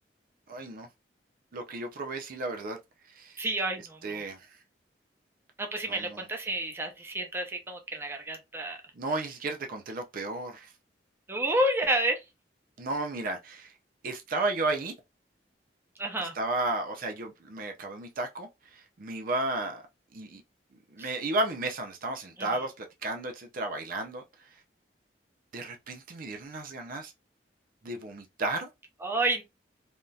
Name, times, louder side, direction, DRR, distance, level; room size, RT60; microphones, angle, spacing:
voice 1, 0.5-0.9 1.5-2.8 3.2-3.4 4.0-4.5 5.9-6.2 9.0-10.7 12.8-13.7 14.0-14.9 16.2-19.8 20.1-20.4 20.9-24.2 25.5-27.1 27.8-28.7, right 2 dB, 50° right, 0.5 m, -33 dB
voice 2, 3.4-4.2 5.6-8.8 11.3-12.2 16.0-16.3 21.0-21.1 29.0-29.4, right 1 dB, 15° right, 0.7 m, -30 dB
3.4 x 2.6 x 2.3 m
head